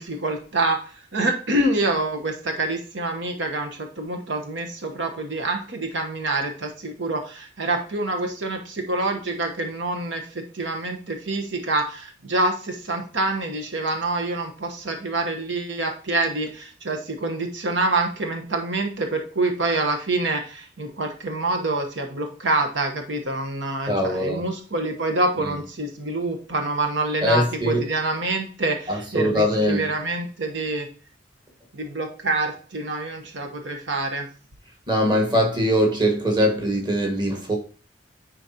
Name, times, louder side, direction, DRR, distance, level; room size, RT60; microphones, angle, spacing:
voice 1, 0.0-30.9 31.7-34.3, right 2 dB, 75° right, 1.1 m, -26 dB
voice 2, 23.9-24.4 27.2-27.8 28.9-29.9 34.9-37.6, equal, 25° right, 1.5 m, -22 dB
9.9 x 4.0 x 2.8 m
head